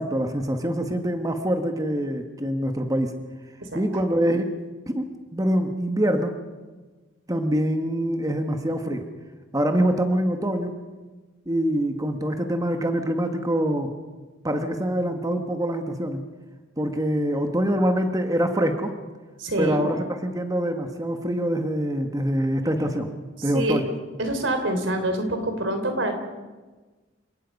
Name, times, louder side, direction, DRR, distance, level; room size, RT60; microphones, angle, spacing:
voice 1, 0.0-3.1 3.7-4.5 4.9-6.4 7.3-9.1 9.5-10.8 11.5-13.9 14.4-16.3 16.8-18.9 19.6-23.1 23.4-23.9, right 1 dB, 20° right, 5 dB, 1.4 m, -25 dB
voice 2, 19.4-19.8 23.5-23.8 24.2-26.2, right 1 dB, 80° right, 6 dB, 3.5 m, -26 dB
29.0 x 17.5 x 5.4 m, 1.3 s
head